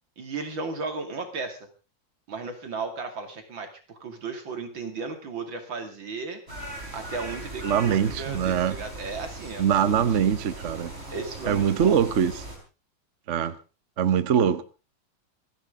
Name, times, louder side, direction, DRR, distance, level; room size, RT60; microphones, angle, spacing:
voice 1, 0.2-1.6 2.3-6.4 6.9-10.3 11.1-12.0, right 4 dB, 80° right, 5 dB, 3.3 m, -35 dB
sound 1, 6.5-12.6, right 2 dB, 30° right, 5.1 m, -39 dB
voice 2, 7.6-8.8 9.6-10.9 11.5-12.3 13.3-13.6 14.0-14.6, right 8 dB, 50° right, 13 dB, 1.0 m, -23 dB
27.0 x 10.5 x 3.7 m, 0.33 s
omnidirectional pair, 2.1 m